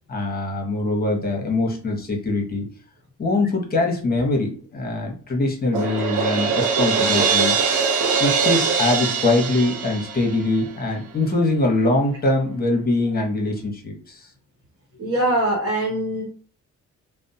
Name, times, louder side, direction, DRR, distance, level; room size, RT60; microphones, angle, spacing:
voice 1, 0.1-2.6 3.2-7.7 8.2-14.2, left 2 dB, 30° left, 1 dB, 1.0 m, -23 dB
Crash cymbal, 5.7-10.7, right 5 dB, 80° right, 0.7 m, -22 dB
voice 2, 15.0-16.2, right 1 dB, 45° right, -5 dB, 1.0 m, -22 dB
2.6 x 2.0 x 2.7 m, 0.42 s
cardioid pair, 90°, 30 cm